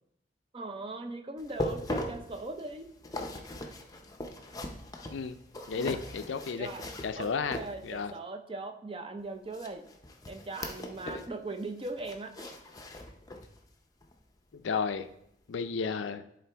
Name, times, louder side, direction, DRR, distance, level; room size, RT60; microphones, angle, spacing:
voice 1, 0.5-2.9 5.8-6.0 6.5-6.8 7.2-9.9 10.3-12.5, right 2 dB, 30° right, 7 dB, 0.5 m, -40 dB
sound 1, 1.4-8.1 9.5-11.3 11.6-13.6 14.0-14.2 14.7-14.8, left 1 dB, 20° left, 0.6 m, -40 dB
voice 2, 5.7-6.7 7.0-7.6 7.8-8.1 11.1-11.2 14.5-15.1 15.5-16.2, left 5 dB, 85° left, 10 dB, 0.5 m, -32 dB
11.0 x 3.8 x 3.4 m, 0.76 s
head